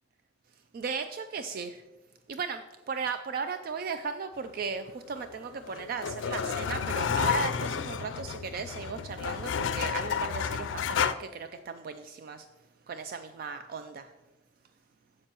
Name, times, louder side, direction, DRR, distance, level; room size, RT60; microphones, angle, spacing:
voice 1, 0.7-1.8 2.3-12.5 12.9-14.1, right 5 dB, 50° right, 9 dB, 0.3 m, -36 dB
sound 1, 5.2-11.1, left 7 dB, 80° left, 0.4 m, -31 dB
9.8 x 7.5 x 2.9 m, 1.1 s
head